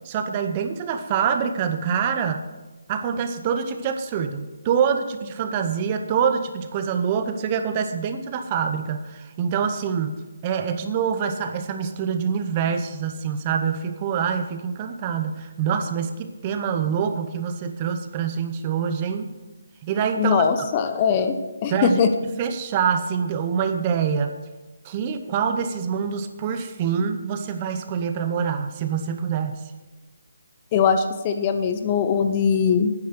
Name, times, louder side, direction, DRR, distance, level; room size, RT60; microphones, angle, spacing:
voice 1, 0.0-2.5 2.9-19.3 19.8-20.4 21.7-22.1 22.4-24.4 24.8-29.6, right 7 dB, 25° right, 8 dB, 0.8 m, -25 dB
voice 2, 20.2-21.3 21.6-22.1 30.7-32.9, left 6 dB, 25° left, 8 dB, 0.8 m, -21 dB
11.5 x 9.7 x 6.0 m, 1.2 s
hypercardioid pair, 165°, 0 cm